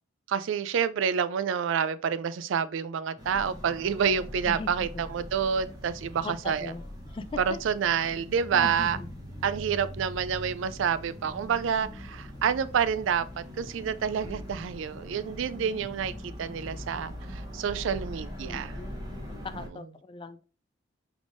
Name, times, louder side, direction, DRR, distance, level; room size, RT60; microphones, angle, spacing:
voice 1, 0.3-6.7 7.5-9.0 9.4-18.8, right 7 dB, 65° right, 0.3 m, -28 dB
sound 1, 3.2-19.7, equal, 20° right, 1.0 m, -42 dB
voice 2, 4.5-5.0 6.2-6.8 7.1-7.6 8.5-9.1 18.5-18.9 19.3-20.4, left 3 dB, 25° left, 0.3 m, -39 dB
5.0 x 3.5 x 2.5 m
head